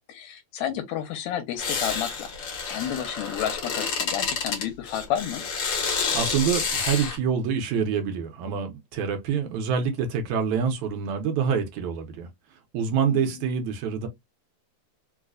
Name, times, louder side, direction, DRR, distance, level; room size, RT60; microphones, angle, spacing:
voice 1, 0.1-5.4 13.1-13.4, left 10 dB, 80° left, 1.9 m, -31 dB
sound 1, 1.6-7.2, left 5 dB, 60° left, 1.2 m, -29 dB
voice 2, 6.1-12.3 12.7-14.1, right 7 dB, 75° right, 1.9 m, -26 dB
4.6 x 2.1 x 2.4 m
omnidirectional pair, 3.4 m